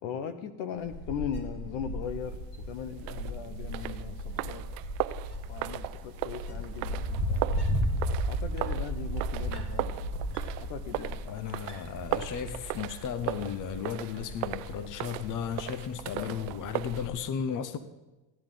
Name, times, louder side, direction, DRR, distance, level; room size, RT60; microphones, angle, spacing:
voice 1, 0.0-2.4 2.7-4.7 5.4-7.5 8.2-10.1 10.6-11.2 16.2-16.5, left 7 dB, 75° left, 1.1 m, -39 dB
Wind, 0.8-17.1, equal, 55° left, 2.8 m, -35 dB
sound 1, 3.0-17.1, right 17 dB, 80° right, 0.6 m, -38 dB
voice 2, 11.2-17.8, left 8 dB, 40° left, 0.8 m, -35 dB
15.5 x 10.5 x 3.8 m
supercardioid pair, 90°, 49 cm